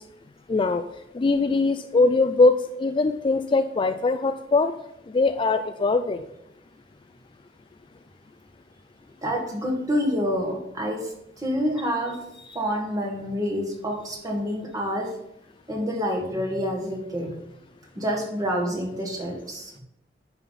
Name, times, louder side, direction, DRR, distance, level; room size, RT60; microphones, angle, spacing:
voice 1, 0.5-0.8 1.1-4.7 5.1-6.2, left 3 dB, 30° left, 8 dB, 0.3 m, -21 dB
voice 2, 9.2-12.1 12.5-15.1 15.7-17.4 17.9-19.8, equal, 20° right, 0 dB, 1.7 m, -27 dB
10.0 x 5.6 x 4.1 m, 0.83 s
head